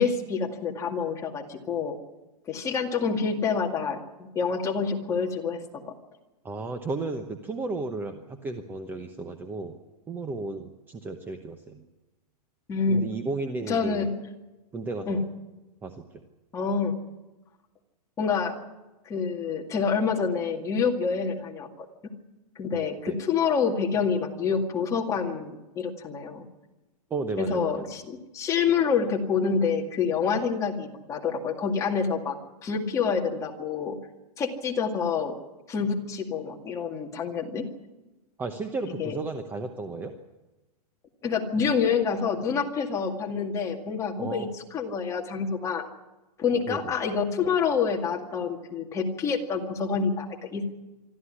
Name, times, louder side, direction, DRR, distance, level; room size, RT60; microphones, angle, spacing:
voice 1, 0.0-2.0 2.5-5.9 12.7-13.0 13.7-14.1 15.1-15.2 16.5-17.0 18.2-18.6 19.1-21.9 22.6-26.4 27.4-34.0 34.4-35.4 35.7-37.7 39.0-39.2 41.2-44.5 44.7-45.8 46.4-50.7, left 5 dB, 15° left, 1 dB, 2.2 m, -27 dB
voice 2, 6.4-9.8 10.1-11.9 12.9-14.1 14.7-15.3 15.8-16.2 22.7-23.2 27.1-27.9 38.4-40.1 44.2-44.5 46.7-46.8, right 3 dB, 10° right, 6 dB, 0.9 m, -34 dB
25.0 x 13.5 x 9.9 m, 1.1 s
hypercardioid pair, 165°, 20 cm